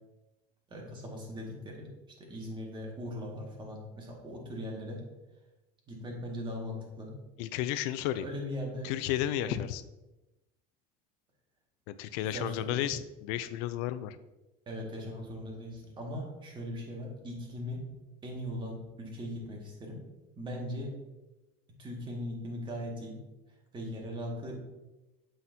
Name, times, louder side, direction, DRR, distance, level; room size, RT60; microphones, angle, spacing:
voice 1, 0.7-1.9 2.2-5.0 5.9-7.1 8.2-8.9 9.5-9.6 12.2-12.8 14.7-17.8 18.2-20.0 20.4-20.9 21.8-23.2 23.7-24.6, equal, 25° right, -1 dB, 1.9 m, -39 dB
voice 2, 7.4-8.3 8.8-9.8 11.9-14.2, left 12 dB, 75° left, 13 dB, 0.4 m, -33 dB
7.6 x 5.7 x 2.7 m, 1.0 s
cardioid pair, 125°, 18 cm